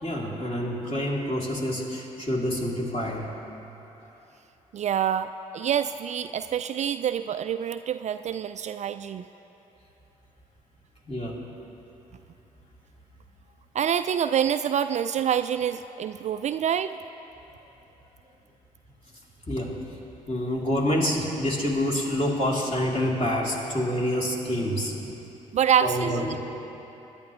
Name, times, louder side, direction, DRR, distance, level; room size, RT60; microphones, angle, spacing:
voice 1, 0.0-3.3 11.1-11.4 19.5-19.8 20.3-25.1 25.8-26.4, left 1 dB, 35° left, -3 dB, 3.2 m, -27 dB
voice 2, 4.7-9.2 13.7-17.0 25.5-26.3, right 9 dB, 40° right, 11 dB, 0.4 m, -26 dB
22.0 x 10.5 x 3.1 m, 3.0 s
hypercardioid pair, 50°, 17 cm